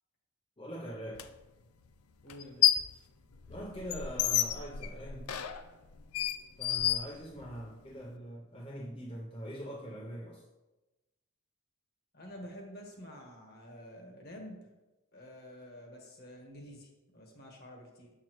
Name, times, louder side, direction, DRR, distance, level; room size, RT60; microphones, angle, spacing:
voice 1, 0.6-1.3 3.5-5.3 6.6-10.4, equal, 25° left, 0.6 m, -43 dB
sound 1, 1.2-1.3 2.3-3.0 3.3-7.7, left 10 dB, 90° left, 0.5 m, -30 dB
voice 2, 2.2-2.7 12.1-14.6 15.1-18.1, equal, 45° left, 1.3 m, -49 dB
7.4 x 6.2 x 3.0 m
head